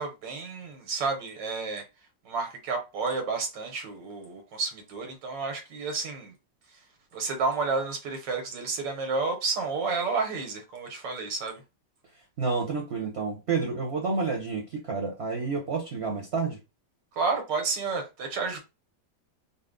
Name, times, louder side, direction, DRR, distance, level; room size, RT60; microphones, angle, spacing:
voice 1, 0.0-1.8 2.2-6.3 7.1-11.6 17.2-18.6, right 4 dB, 85° right, 1.7 m, -31 dB
voice 2, 12.4-16.6, right 4 dB, 50° right, 0.9 m, -29 dB
4.0 x 2.0 x 3.7 m
omnidirectional pair, 1.9 m